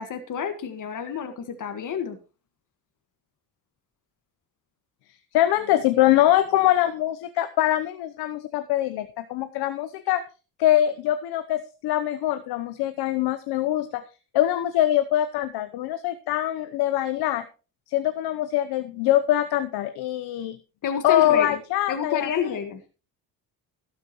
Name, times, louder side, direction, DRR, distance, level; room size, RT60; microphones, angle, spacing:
voice 1, 0.0-2.2 20.8-21.6 21.9-22.8, left 7 dB, 55° left, 7 dB, 1.7 m, -29 dB
voice 2, 5.3-10.2 10.6-14.0 14.3-17.5 17.9-20.6 21.0-22.6, left 13 dB, 85° left, 10 dB, 0.9 m, -23 dB
13.0 x 12.0 x 3.1 m, 0.33 s
cardioid pair, 95°, 37 cm